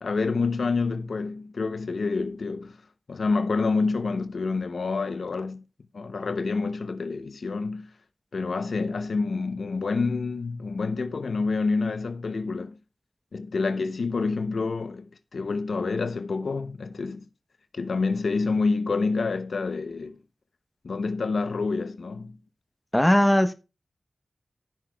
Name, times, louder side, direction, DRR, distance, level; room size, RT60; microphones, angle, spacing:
voice 1, 0.0-2.8 3.1-5.6 5.9-7.9 8.3-12.8 13.3-15.0 15.3-17.2 17.7-20.2 20.8-22.4, left 4 dB, 80° left, 0.6 m, -27 dB
voice 2, 22.9-23.5, equal, 10° left, 0.9 m, -19 dB
14.5 x 6.1 x 2.3 m
cardioid pair, 55°, 0 cm